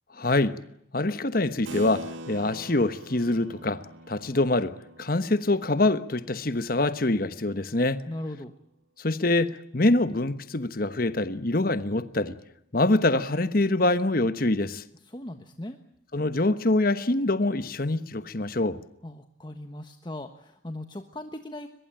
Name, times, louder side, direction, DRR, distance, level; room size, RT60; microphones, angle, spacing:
voice 1, 0.1-0.6 0.9-8.0 9.0-12.4 12.7-14.8 16.1-18.8, left 2 dB, 45° left, 1.2 m, -25 dB
Keyboard (musical), 1.7-7.7, right 1 dB, 80° right, 2.4 m, -44 dB
voice 2, 8.1-8.5 15.0-15.8 19.0-21.7, left 1 dB, 25° left, 1.3 m, -38 dB
23.0 x 22.0 x 9.0 m
head